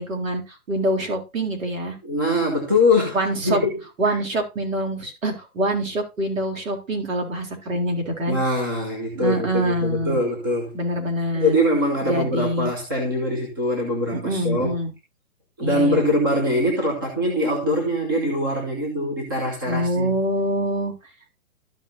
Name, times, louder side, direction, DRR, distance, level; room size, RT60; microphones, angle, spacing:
voice 1, 0.0-2.0 3.1-3.6 4.0-8.4 9.2-10.2 10.7-11.6 12.0-12.7 14.1-14.9 15.6-16.0 19.7-20.9, right 1 dB, 60° right, 3.8 m, -25 dB
voice 2, 2.0-4.2 8.3-10.8 11.3-14.8 15.6-20.1, left 1 dB, 15° right, 0.9 m, -23 dB
13.0 x 5.7 x 2.7 m
hypercardioid pair, 180°, 44 cm